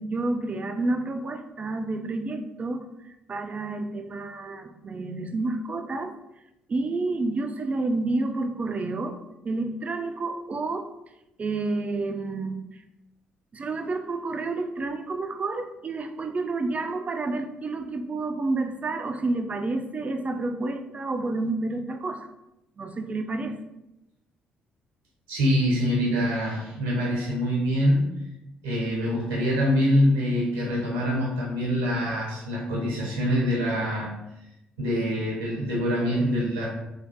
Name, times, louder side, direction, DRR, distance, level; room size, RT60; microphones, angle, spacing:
voice 1, 0.0-6.1 6.7-9.2 9.4-10.9 11.4-12.6 13.5-22.3 22.8-23.6, right 3 dB, 35° right, 6 dB, 0.4 m, -29 dB
voice 2, 25.3-28.1 28.6-34.1 34.8-36.7, equal, 85° right, -5 dB, 0.7 m, -24 dB
3.3 x 2.3 x 2.6 m, 0.91 s
hypercardioid pair, 45°, 4 cm